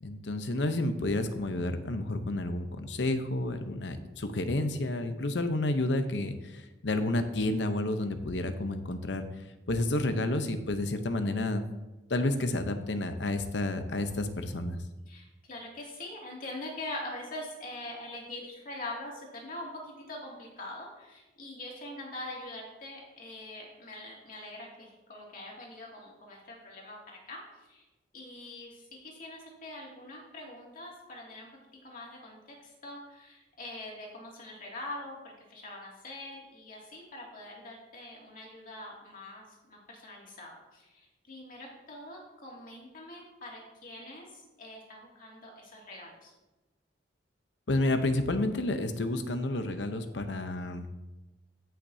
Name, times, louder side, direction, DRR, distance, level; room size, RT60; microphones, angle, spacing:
voice 1, 0.0-6.3 6.8-9.2 9.7-11.6 12.1-14.8 47.7-50.9, left 2 dB, 70° left, 8 dB, 0.8 m, -30 dB
voice 2, 15.1-27.8 28.1-31.5 31.8-46.3, left 1 dB, 50° left, -2 dB, 2.5 m, -44 dB
14.5 x 5.9 x 2.8 m, 1.1 s
head